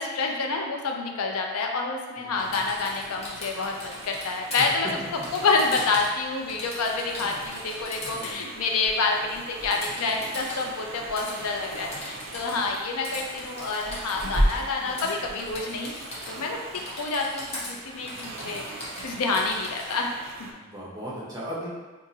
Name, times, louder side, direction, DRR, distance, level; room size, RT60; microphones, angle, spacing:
voice 1, 0.0-4.9 5.3-15.9 16.3-16.6 16.9-20.3, left 3 dB, 85° left, 1 dB, 0.4 m, -28 dB
voice 2, 2.2-2.6 4.6-4.9 7.2-7.5 8.0-8.5 20.5-21.7, equal, 15° right, -7 dB, 0.7 m, -38 dB
sound 1, 2.3-20.5, right 3 dB, 60° right, 0.4 m, -43 dB
Typing, 2.4-4.6 5.2-6.2 6.5-8.3 9.7-10.7 11.2-12.8 13.0-14.6 15.0-15.1 15.4-16.5 16.7-17.7 18.1-20.0, left 1 dB, 30° left, 0.6 m, -39 dB
sound 2, 6.7-17.9, equal, 60° left, 0.8 m, -36 dB
2.7 x 2.5 x 3.9 m, 1.3 s
head